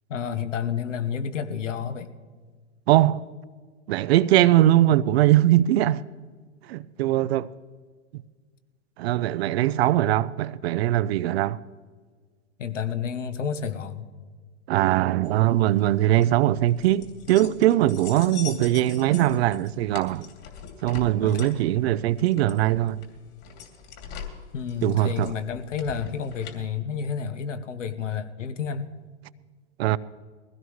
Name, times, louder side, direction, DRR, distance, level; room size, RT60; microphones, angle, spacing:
voice 1, 0.1-2.1 9.8-9.9 12.6-14.1 21.2-21.5 24.5-28.9, left 7 dB, 80° left, 1.2 m, -30 dB
voice 2, 2.9-3.2 3.9-6.0 6.6-7.5 9.0-11.6 14.7-20.3 20.8-23.0 24.8-25.3 29.8-30.0, right 14 dB, 60° right, 0.6 m, -21 dB
sound 1, 15.2-26.6, left 7 dB, 40° left, 2.8 m, -43 dB
21.0 x 16.0 x 3.2 m
hypercardioid pair, 110°, 36 cm